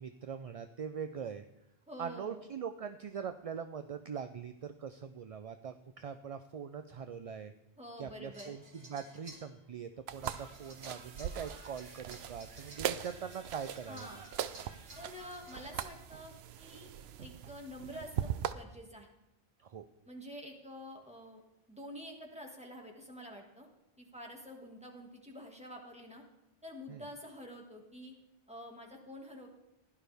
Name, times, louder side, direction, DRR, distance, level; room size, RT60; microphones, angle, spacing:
voice 1, 0.0-1.4 2.0-7.5 8.0-14.1 19.6-19.8 26.9-27.0, right 7 dB, 50° right, 9 dB, 0.5 m, -42 dB
voice 2, 1.9-2.4 7.8-8.5 13.9-14.2 15.0-16.9 17.2-18.3 18.5-19.1 20.1-21.4 21.7-23.7 24.0-26.2 26.6-28.1 28.5-29.5, equal, 5° right, 0 dB, 1.9 m, -48 dB
sound 1, 8.3-9.5 10.2-15.8, right 1 dB, 70° right, 2.1 m, -54 dB
sound 2, 10.1-18.5, right 10 dB, 90° right, 0.9 m, -41 dB
16.0 x 11.0 x 3.5 m, 0.91 s
omnidirectional pair, 1.0 m